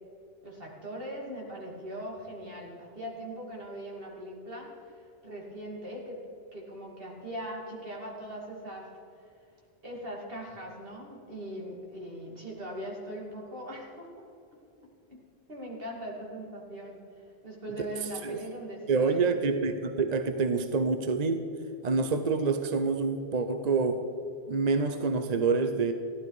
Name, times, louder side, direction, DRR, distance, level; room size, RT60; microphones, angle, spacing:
voice 1, 0.4-6.2 6.5-8.9 9.2-9.3 9.8-14.2 15.1-15.2 15.5-19.2, equal, 65° right, -3 dB, 2.8 m, -40 dB
voice 2, 18.9-21.4 21.8-24.1 24.5-25.9, right 4 dB, 45° right, 8 dB, 0.7 m, -27 dB
15.5 x 11.5 x 4.8 m, 2.6 s
omnidirectional pair, 1.1 m